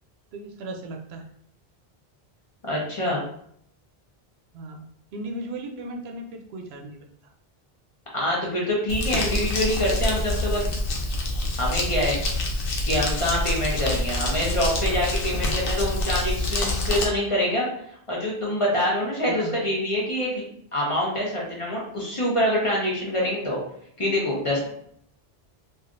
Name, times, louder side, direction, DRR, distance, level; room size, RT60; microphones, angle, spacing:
voice 1, 0.3-1.3 4.5-4.9 5.1-7.3 13.9-14.0 15.3-15.5 19.3-19.6, right 1 dB, 85° right, 3 dB, 0.8 m, -37 dB
voice 2, 2.6-3.2 8.1-10.8 11.6-12.2 12.8-17.7 18.1-20.4 20.7-23.6 24.0-24.7, equal, 35° left, -4 dB, 0.8 m, -25 dB
Crumpling crinkling, 8.9-17.1, left 2 dB, 70° left, 0.8 m, -26 dB
3.2 x 2.5 x 2.5 m, 0.68 s
omnidirectional pair, 1.0 m